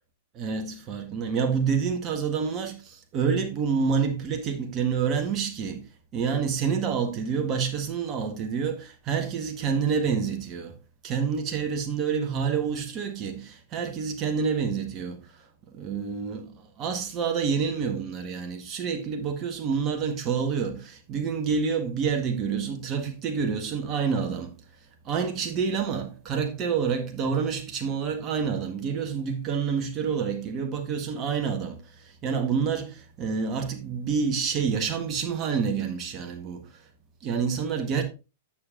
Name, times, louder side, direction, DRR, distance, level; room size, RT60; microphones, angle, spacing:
voice 1, 0.3-10.8 11.0-24.6 25.0-36.9 37.2-38.0, right 6 dB, 30° right, 1.7 m, -28 dB
9.3 x 7.0 x 2.9 m
figure-of-eight pair, 100°, 0 cm